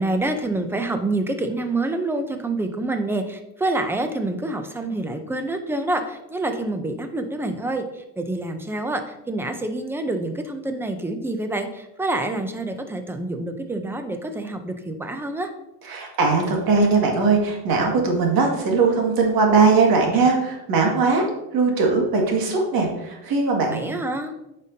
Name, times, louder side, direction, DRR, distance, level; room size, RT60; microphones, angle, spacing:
voice 1, 0.0-15.5 23.7-24.3, right 2 dB, 5° right, 6 dB, 0.5 m, -27 dB
voice 2, 15.8-21.3 21.5-23.9, right 4 dB, 55° right, 0 dB, 2.0 m, -20 dB
8.9 x 5.3 x 2.8 m, 0.89 s
cardioid pair, 135°, 44 cm